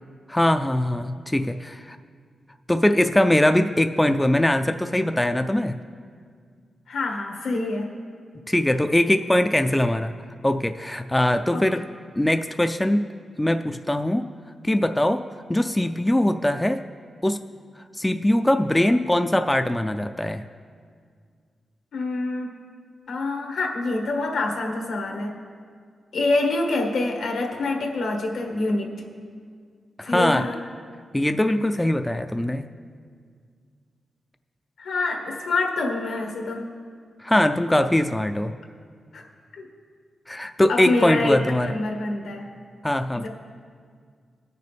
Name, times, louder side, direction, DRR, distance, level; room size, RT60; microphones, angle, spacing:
voice 1, 0.3-2.0 2.7-5.8 8.5-10.1 10.4-11.9 12.2-13.0 13.4-14.3 14.6-16.8 17.2-17.4 18.0-20.4 30.0-30.4 31.1-32.7 37.2-38.5 40.3-41.8 42.8-43.3, left 1 dB, 10° left, 8 dB, 0.4 m, -21 dB
voice 2, 6.9-7.9 11.5-11.6 21.9-22.5 23.1-25.3 26.1-28.9 30.0-30.5 34.8-36.6 39.1-39.2 39.6-39.7 40.7-42.5 43.2-43.3, left 2 dB, 85° left, 1 dB, 1.6 m, -26 dB
20.0 x 6.7 x 3.4 m, 2.1 s
cardioid pair, 95°, 0 cm